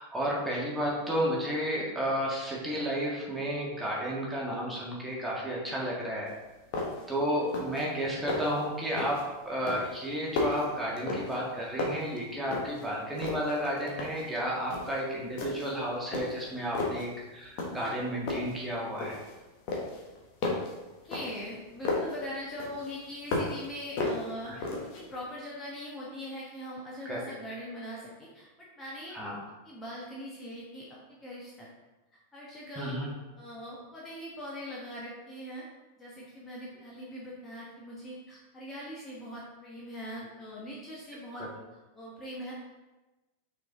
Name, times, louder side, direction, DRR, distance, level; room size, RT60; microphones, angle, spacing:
voice 1, 0.0-6.3 7.1-19.2 24.5-24.6 27.1-27.2 29.1-29.4 32.8-33.1 41.4-41.5, equal, 5° right, -5 dB, 1.8 m, -32 dB
sound 1, 6.3-6.4 6.7-7.1 7.4-7.8 8.1-8.6 9.0-9.3 9.7-11.5 11.8-12.9 13.2-14.3 14.7-15.0 15.4-15.8 16.1-17.1 17.6-18.0 18.3-19.3 19.7-22.2 22.6-23.7 24.0-25.0, left 3 dB, 45° left, 1.3 m, -34 dB
voice 2, 21.0-24.7 25.0-29.1 29.6-31.7 32.3-32.9 33.4-35.6 36.0-42.5, equal, 15° left, -6 dB, 1.3 m, -41 dB
6.0 x 4.7 x 3.8 m, 1.1 s
figure-of-eight pair, 90°, 0 cm